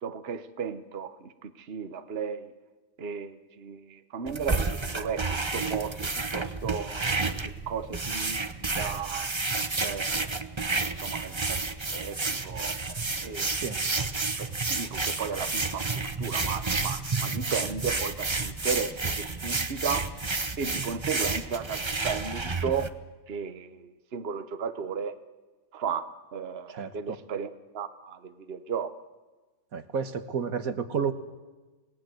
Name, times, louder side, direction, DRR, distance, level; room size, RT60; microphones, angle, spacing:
voice 1, 0.0-2.5 3.0-6.0 6.3-9.3 9.8-10.6 10.8-13.7 14.4-20.1 20.6-22.9 23.3-25.1 25.7-28.9, right 6 dB, 45° right, 10 dB, 1.3 m, -35 dB
sound 1, 4.3-22.9, right 3 dB, 20° right, 1.0 m, -30 dB
voice 2, 29.7-31.1, right 6 dB, 70° right, 10 dB, 1.8 m, -30 dB
28.5 x 19.0 x 7.8 m, 1.2 s
omnidirectional pair, 1.5 m